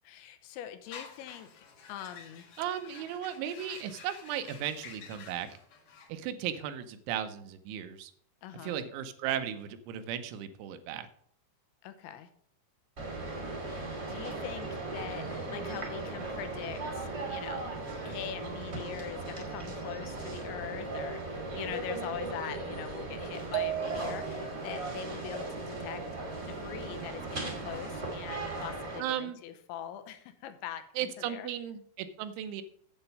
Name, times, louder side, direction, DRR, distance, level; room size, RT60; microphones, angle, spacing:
voice 1, 0.0-2.5 8.4-8.8 11.8-12.3 13.7-26.0 26.5-31.5, left 10 dB, 80° left, 9 dB, 3.0 m, -43 dB
sound 1, 0.9-6.1, left 6 dB, 60° left, 2.8 m, -50 dB
voice 2, 2.6-5.5 6.1-8.1 8.6-11.1 29.0-29.4 31.0-32.6, right 10 dB, 90° right, 9 dB, 3.3 m, -36 dB
sound 2, 13.0-29.0, right 2 dB, 30° right, 1.2 m, -37 dB
sound 3, 23.5-24.7, right 11 dB, 70° right, 2.5 m, -34 dB
8.8 x 8.0 x 5.4 m, 0.63 s
omnidirectional pair, 5.3 m